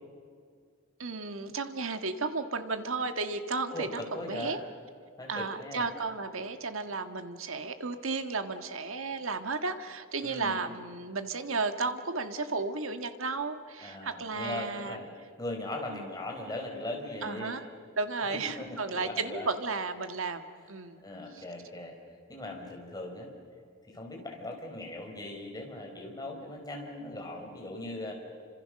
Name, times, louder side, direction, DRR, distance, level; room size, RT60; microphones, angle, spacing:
voice 1, 1.0-4.6 5.3-15.0 15.9-16.1 17.2-17.7 18.0-21.1 21.3-21.4, right 4 dB, 65° right, 8 dB, 1.7 m, -34 dB
voice 2, 3.7-4.6 5.2-5.9 10.2-10.7 13.8-15.1 15.4-17.5 18.3-19.5 21.0-21.9 22.3-23.3 23.9-28.1, left 2 dB, 20° left, 1 dB, 4.9 m, -39 dB
29.0 x 26.5 x 6.6 m, 2.2 s
head